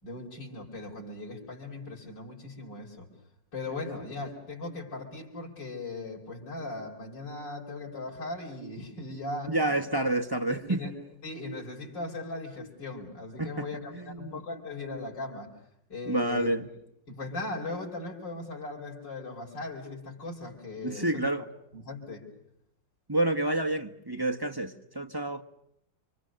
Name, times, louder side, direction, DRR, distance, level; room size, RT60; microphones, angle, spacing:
voice 1, 0.0-3.1 3.5-9.8 10.5-10.9 11.2-15.5 15.9-16.5 17.1-21.3 21.7-22.3, left 2 dB, 80° left, 5.6 m, -38 dB
voice 2, 9.4-10.8 13.4-13.7 13.9-14.4 16.1-16.6 20.8-21.5 23.1-25.4, right 1 dB, 15° right, 1.1 m, -29 dB
30.0 x 25.5 x 6.4 m
omnidirectional pair, 1.9 m